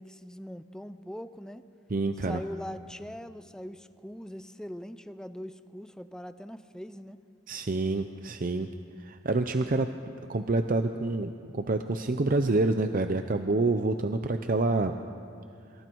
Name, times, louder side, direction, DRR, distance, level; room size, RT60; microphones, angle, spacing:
voice 1, 0.0-1.6 2.2-7.2, equal, 5° left, 12 dB, 0.5 m, -41 dB
voice 2, 1.9-2.4 7.5-8.7 9.0-9.9 10.3-15.0, right 2 dB, 45° right, 8 dB, 0.6 m, -27 dB
27.5 x 25.0 x 4.6 m, 2.5 s
head